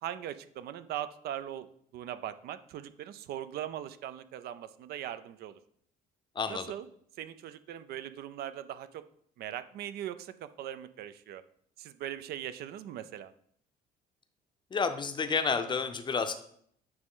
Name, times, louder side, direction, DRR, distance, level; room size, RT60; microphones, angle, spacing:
voice 1, 0.0-5.6 6.5-6.9 7.2-9.1 9.4-11.4 11.8-13.3, right 11 dB, 70° right, 13 dB, 0.4 m, -40 dB
voice 2, 6.4-6.7 14.7-16.3, left 5 dB, 25° left, 8 dB, 0.6 m, -30 dB
8.7 x 3.1 x 3.7 m, 0.65 s
cardioid pair, 110°, 17 cm